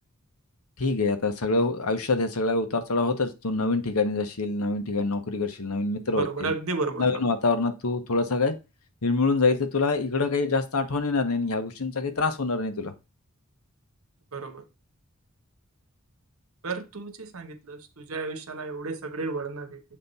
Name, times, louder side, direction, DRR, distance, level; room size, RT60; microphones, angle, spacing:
voice 1, 0.8-6.5 7.0-8.6 9.0-12.9, left 3 dB, 85° left, 1.0 m, -25 dB
voice 2, 6.2-7.2 14.3-14.6 16.6-19.8, right 3 dB, 75° right, 1.0 m, -32 dB
7.4 x 3.5 x 4.1 m
head